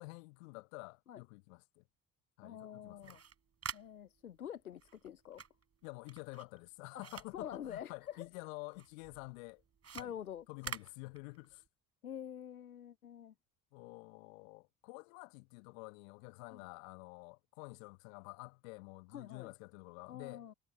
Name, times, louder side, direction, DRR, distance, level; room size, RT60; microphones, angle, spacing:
voice 1, 0.0-1.8 2.4-3.2 5.8-9.6 9.9-10.1 10.5-11.6 13.7-20.5, left 29 dB, 65° left, 1.2 m, -49 dB
voice 2, 2.4-3.2 3.7-5.4 7.3-8.3 9.9-10.5 12.0-13.3 16.5-16.6 19.1-19.5 20.1-20.5, left 9 dB, 90° left, 0.6 m, -46 dB
sound 1, 2.9-8.4 8.7-11.7, right 6 dB, 35° right, 5.6 m, -49 dB
figure-of-eight pair, 55°, 42 cm